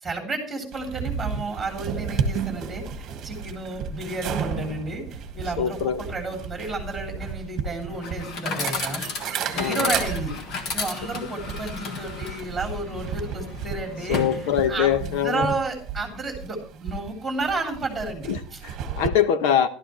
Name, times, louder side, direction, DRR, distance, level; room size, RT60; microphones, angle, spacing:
voice 1, 0.0-9.0 9.5-14.2 14.7-18.6, right 3 dB, 5° right, 3.3 m, -31 dB
sound 1, 0.7-19.1, right 6 dB, 35° right, 1.4 m, -33 dB
voice 2, 5.6-6.0 9.5-9.9 14.1-15.5 18.3-19.7, left 9 dB, 75° left, 1.3 m, -23 dB
Chatter / Coin (dropping), 7.9-14.9, left 4 dB, 40° left, 1.5 m, -33 dB
15.0 x 12.5 x 3.1 m
cardioid pair, 180°, 0 cm